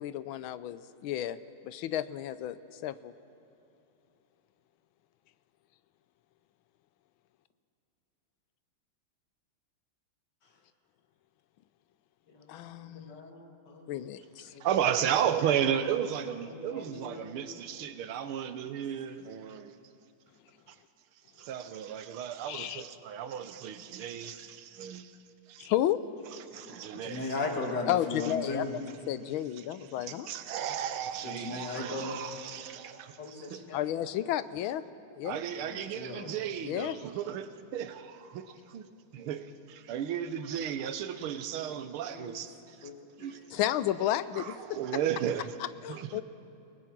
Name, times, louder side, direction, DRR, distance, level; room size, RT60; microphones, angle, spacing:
voice 1, 0.0-1.4 1.6-3.1 12.5-13.1 13.9-14.5 22.5-22.8 25.6-26.0 27.9-28.6 29.1-30.3 33.7-34.8 35.1-35.4 36.6-37.0 43.5-44.8 45.8-46.2, left 12 dB, 80° left, 1.5 m, -32 dB
voice 2, 12.3-13.9 14.5-14.7 16.5-17.6 26.6-28.8 31.2-32.2 33.2-33.9 35.3-35.4 35.7-36.3 42.1-42.4 42.8-43.5, left 3 dB, 55° left, 2.8 m, -38 dB
voice 3, 14.6-19.8 20.7-20.8 21.4-25.1 25.5-25.7 26.5-27.4 30.0-33.7 35.2-38.9 39.1-42.9 43.2-43.4 44.3-45.6 45.9-46.2, right 9 dB, 90° right, 1.8 m, -34 dB
29.5 x 19.0 x 6.1 m
omnidirectional pair, 2.3 m